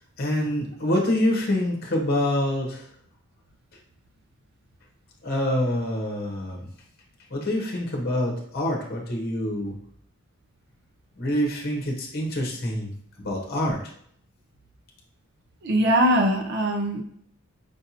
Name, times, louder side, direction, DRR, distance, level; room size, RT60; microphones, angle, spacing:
voice 1, 0.2-2.9 5.2-6.6 7.3-9.8 11.2-13.8, left 1 dB, 45° left, 0 dB, 0.9 m, -26 dB
voice 2, 15.6-17.0, equal, 50° right, 2 dB, 0.4 m, -21 dB
5.1 x 2.6 x 2.8 m, 0.64 s
head